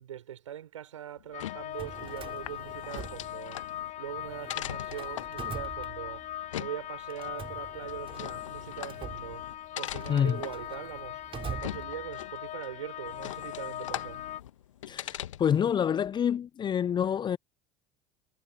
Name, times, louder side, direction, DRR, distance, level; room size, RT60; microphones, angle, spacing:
voice 1, 0.0-3.7 4.0-11.2 11.5-14.2, right 10 dB, 80° right, 6.5 m, -42 dB
sound 1, 1.2-15.7, left 12 dB, 80° left, 1.5 m, -42 dB
sound 2, 1.3-14.4, left 12 dB, 45° left, 2.2 m, -40 dB
Drawer open or close, 1.6-3.8 4.1-6.5 7.1-12.4, right 7 dB, 35° right, 4.7 m, -45 dB
voice 2, 10.1-10.4 14.9-17.4, left 8 dB, 30° left, 0.5 m, -27 dB
hypercardioid pair, 70°, 16 cm